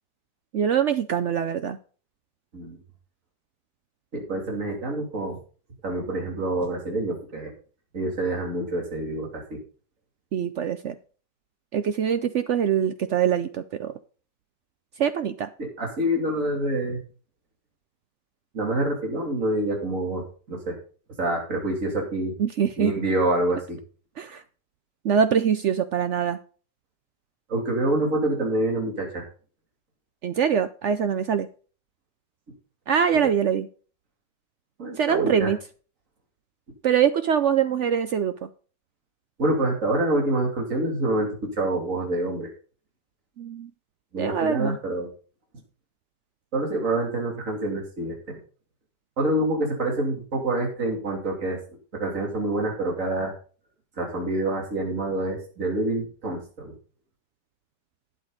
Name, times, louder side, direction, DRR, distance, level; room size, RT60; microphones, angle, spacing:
voice 1, 0.5-1.8 10.3-11.0 11.7-13.9 15.0-15.5 22.4-22.9 24.2-24.4 25.0-26.4 30.2-31.5 32.9-33.7 35.0-35.6 36.8-38.5 43.4-43.7 44.2-44.8, right 8 dB, 70° right, 11 dB, 0.6 m, -23 dB
voice 2, 4.1-5.4 5.8-7.5 7.9-9.6 15.6-17.0 18.5-20.8 21.2-22.3 22.8-23.8 27.5-29.3 33.1-33.3 34.8-35.5 39.4-42.5 44.1-45.1 46.5-48.4 49.2-51.6 51.9-53.3 54.0-56.8, right 1 dB, 45° right, 0 dB, 3.3 m, -27 dB
12.0 x 9.1 x 4.0 m, 0.40 s
omnidirectional pair, 1.9 m